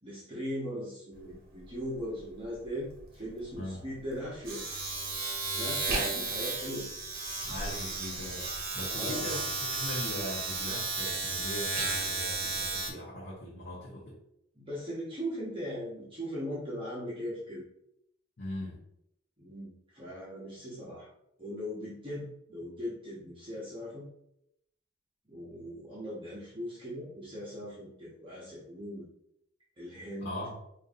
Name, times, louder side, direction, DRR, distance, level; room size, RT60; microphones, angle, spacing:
voice 1, 0.0-4.6 5.5-6.9 8.8-9.3 14.6-17.6 19.4-21.1 21.4-24.1 25.3-29.1 29.8-30.3, equal, 25° right, -8 dB, 0.9 m, -39 dB
Domestic sounds home sounds, 1.1-1.3 1.6-12.9, right 3 dB, 50° right, 1.0 m, -34 dB
voice 2, 7.5-14.2 18.4-18.8 30.2-30.5, left 1 dB, 60° left, -5 dB, 0.9 m, -40 dB
5.3 x 2.6 x 2.5 m, 0.77 s
head